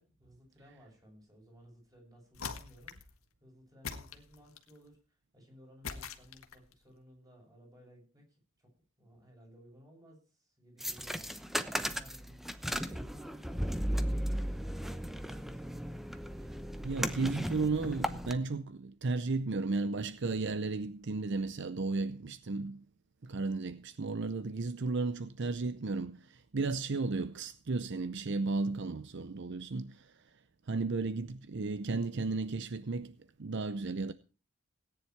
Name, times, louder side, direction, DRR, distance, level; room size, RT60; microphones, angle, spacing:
voice 1, 0.0-15.8, equal, 15° right, 6.8 m, -59 dB
sound 1, 2.3-3.1 3.8-4.8 5.8-6.7, left 5 dB, 80° left, 1.7 m, -43 dB
sound 2, 10.8-18.3, equal, ahead, 0.9 m, -36 dB
voice 2, 16.8-22.8 23.2-30.2 30.7-34.1, right 3 dB, 55° right, 0.6 m, -34 dB
17.5 x 10.0 x 4.5 m
head